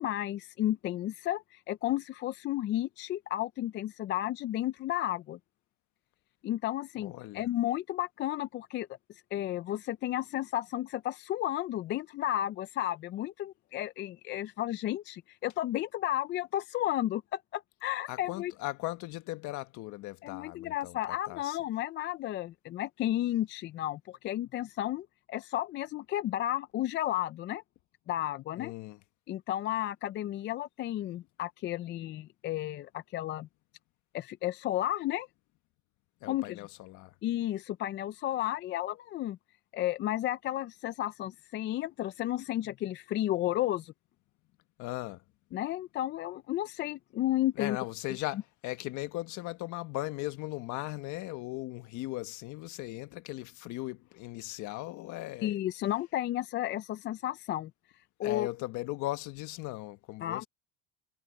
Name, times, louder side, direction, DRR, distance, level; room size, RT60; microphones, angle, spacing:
voice 1, 0.0-5.4 6.4-8.9 9.3-18.5 20.2-27.6 28.1-28.7 29.3-33.5 34.1-35.3 36.2-36.6 37.2-39.4 39.7-43.9 45.5-47.8 55.4-57.7 58.2-58.5 60.2-60.4, left 13 dB, 30° left, 0.5 m, -33 dB
voice 2, 7.0-7.5 18.1-21.6 28.5-29.0 36.2-37.1 44.8-45.2 47.5-55.6 58.2-60.5, left 18 dB, 50° left, 1.5 m, -38 dB
supercardioid pair, 135°, 37 cm